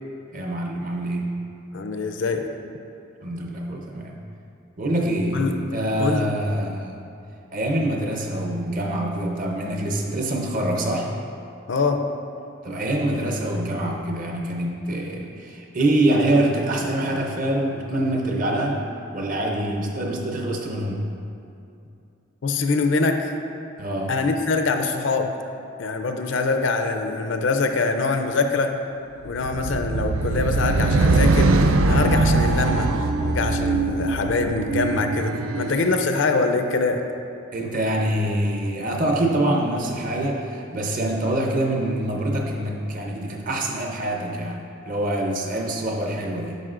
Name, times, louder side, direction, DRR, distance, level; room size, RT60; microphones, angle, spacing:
voice 1, 0.3-1.4 3.2-4.1 4.8-7.0 7.5-11.1 12.6-18.8 19.1-21.0 23.8-24.1 37.5-46.6, right 1 dB, 40° right, 1 dB, 0.7 m, -25 dB
voice 2, 1.7-2.5 5.3-5.6 6.0-6.3 11.7-12.0 22.4-23.3 24.1-25.3 25.8-28.7 29.2-31.5 31.9-32.9 33.2-37.0, left 3 dB, 65° left, 5 dB, 0.4 m, -23 dB
sound 1, 29.3-35.8, right 3 dB, 85° right, 0.4 m, -21 dB
9.2 x 5.7 x 2.5 m, 2.6 s
head